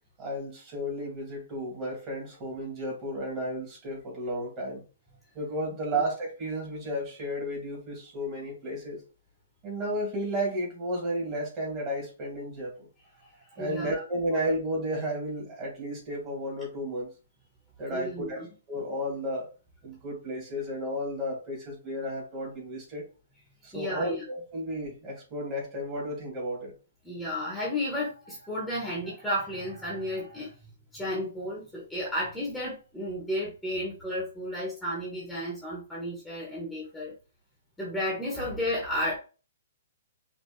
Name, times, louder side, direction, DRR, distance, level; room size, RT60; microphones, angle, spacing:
voice 1, 0.2-4.8 5.3-9.0 9.6-12.9 13.6-17.1 17.8-18.4 18.7-19.5 19.8-23.1 23.6-26.7, equal, 25° right, 2.4 m, -33 dB
voice 2, 13.2-14.0 17.9-18.5 23.7-24.2 27.0-37.1 37.8-39.2, equal, ahead, 1.3 m, -33 dB
5.1 x 2.9 x 3.2 m
hypercardioid pair, 155°, 0 cm